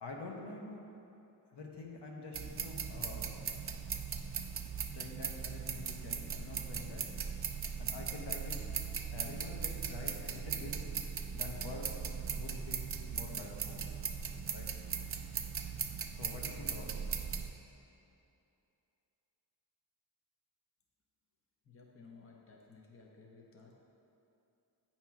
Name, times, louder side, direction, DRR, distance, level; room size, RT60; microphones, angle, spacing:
voice 1, 0.0-0.9 1.5-3.3 4.9-7.0 7.8-8.6 9.1-10.7 11.3-11.9 12.3-13.8 14.5-14.7 16.1-16.9, left 3 dB, 85° left, -1 dB, 1.0 m, -47 dB
sound 1, 2.3-17.5, right 6 dB, 35° right, 0.4 m, -39 dB
voice 2, 21.6-23.7, left 4 dB, 35° left, -1 dB, 0.7 m, -57 dB
8.8 x 2.9 x 5.8 m, 2.8 s
wide cardioid pair, 125°, 40 cm